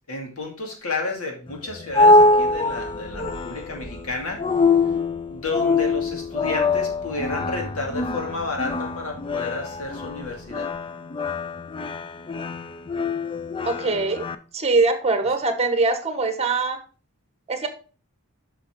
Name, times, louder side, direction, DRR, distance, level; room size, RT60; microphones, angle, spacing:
voice 1, 0.0-4.4 5.3-10.7, left 3 dB, 75° left, 1 dB, 2.4 m, -31 dB
sound 1, 1.5-14.3, left 2 dB, 20° left, 0.4 m, -23 dB
sound 2, 1.9-10.7, equal, 40° left, 2.2 m, -44 dB
voice 2, 13.6-14.3 14.5-16.8 17.5-17.7, right 3 dB, 30° right, 8 dB, 1.1 m, -22 dB
7.7 x 5.8 x 3.7 m, 0.37 s
head